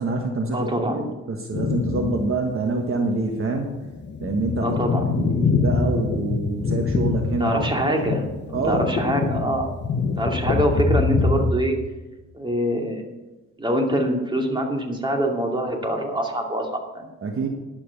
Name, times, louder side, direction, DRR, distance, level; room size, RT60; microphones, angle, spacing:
voice 1, 0.0-3.7 4.2-4.7 5.1-7.9 8.5-9.0 17.2-17.5, right 3 dB, 45° right, 3 dB, 1.4 m, -26 dB
voice 2, 0.5-1.0 4.6-5.1 7.4-9.7 10.2-11.8 12.3-13.0 13.6-17.1, right 1 dB, 15° right, 1 dB, 2.5 m, -24 dB
sound 1, 1.5-2.4 2.8-2.9 3.6-11.5, left 4 dB, 35° left, 1.1 m, -24 dB
11.0 x 7.6 x 7.0 m, 1.1 s
cardioid pair, 90°, 30 cm